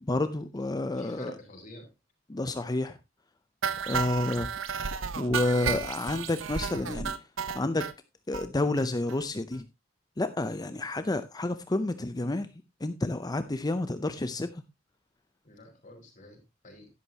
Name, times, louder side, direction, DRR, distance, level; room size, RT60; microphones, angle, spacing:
voice 1, 0.0-1.3 2.3-3.0 3.8-4.5 5.2-7.1 7.5-7.9 8.3-9.7 10.2-12.5 12.8-14.6, left 2 dB, 20° left, 0.5 m, -29 dB
voice 2, 1.0-1.9 10.5-10.8 15.4-16.9, left 1 dB, 40° left, 4.5 m, -48 dB
sound 1, 3.6-7.9 8.3-8.5 8.8-8.9 9.1-9.2 9.5-9.6, right 6 dB, 90° right, 0.9 m, -32 dB
11.0 x 11.0 x 2.8 m
head